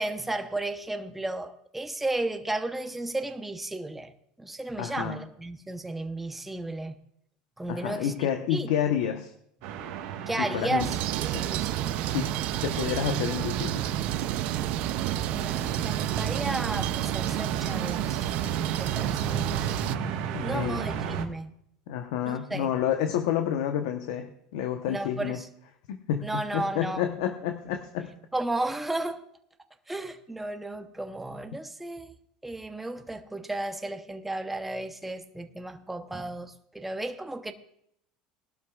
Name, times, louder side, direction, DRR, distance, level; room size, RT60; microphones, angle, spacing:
voice 1, 0.0-4.1 4.4-7.0 7.6-8.7 10.3-10.9 11.2-12.1 15.3-19.6 20.4-21.5 22.3-22.7 23.1-23.2 24.9-25.5 26.2-27.1 28.3-29.2 29.9-32.2 32.4-37.5, right 2 dB, 5° right, 0.9 m, -34 dB
voice 2, 4.8-5.2 7.7-9.3 10.4-10.9 11.3-11.5 12.0-12.3 12.6-13.9 20.3-20.9 21.9-25.4 25.9-28.1, left 9 dB, 80° left, 1.0 m, -29 dB
sound 1, 9.6-21.3, right 8 dB, 75° right, 1.4 m, -34 dB
sound 2, 10.8-20.0, right 14 dB, 60° right, 0.5 m, -31 dB
19.5 x 12.0 x 2.4 m
supercardioid pair, 130°, 2 cm